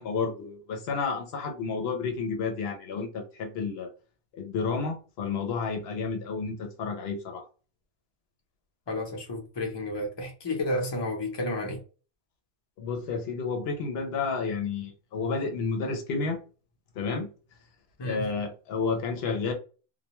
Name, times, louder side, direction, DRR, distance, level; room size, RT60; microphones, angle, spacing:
voice 1, 0.0-3.9 4.3-7.4 12.8-16.4 17.0-17.3 18.0-19.5, left 4 dB, 80° left, 0.8 m, -31 dB
voice 2, 8.9-11.8 18.0-18.2, left 1 dB, 30° left, 0.7 m, -31 dB
2.2 x 2.2 x 2.9 m
omnidirectional pair, 1.0 m